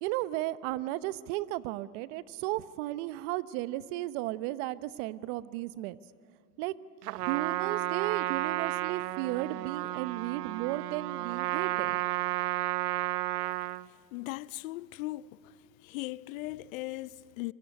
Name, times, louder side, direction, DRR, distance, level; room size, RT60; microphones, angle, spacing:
voice 1, 0.0-6.0 6.6-6.8 7.2-12.0, right 16 dB, 50° right, 0.9 m, -34 dB
Trumpet, 7.0-13.9, right 17 dB, 70° right, 0.7 m, -32 dB
voice 2, 14.1-15.5 15.8-17.5, left 19 dB, 55° left, 0.7 m, -38 dB
25.0 x 22.5 x 10.0 m
hypercardioid pair, 110°, 48 cm